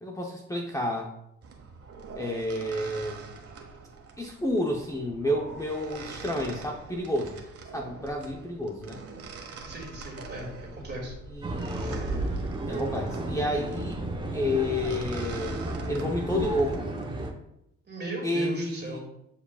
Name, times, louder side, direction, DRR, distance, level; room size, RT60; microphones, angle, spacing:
voice 1, 0.0-1.1 2.1-3.3 4.2-7.4 7.7-9.0 11.3-11.6 12.7-14.0 14.3-15.6 15.9-16.9 18.2-19.0, left 1 dB, 10° left, 0 dB, 0.8 m, -30 dB
sound 1, 1.4-17.3, right 3 dB, 50° right, 1.2 m, -42 dB
voice 2, 9.6-11.1 17.8-19.0, right 1 dB, 35° right, 0 dB, 2.2 m, -37 dB
sound 2, 9.6-16.0, equal, 85° right, 0.8 m, -46 dB
sound 3, 11.4-17.3, right 1 dB, 15° right, 0.9 m, -33 dB
8.5 x 4.9 x 2.4 m, 0.79 s
cardioid pair, 90°, 30 cm